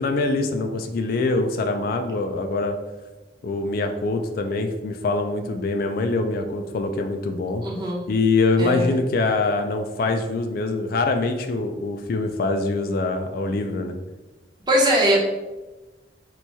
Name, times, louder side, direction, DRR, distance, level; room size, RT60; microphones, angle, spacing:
voice 1, 0.0-2.7 3.4-7.6 8.1-14.0, left 3 dB, 55° left, 5 dB, 0.3 m, -24 dB
voice 2, 7.6-8.0 8.6-8.9 14.7-15.2, equal, 25° right, -5 dB, 0.8 m, -20 dB
4.4 x 2.2 x 2.7 m, 1.1 s
head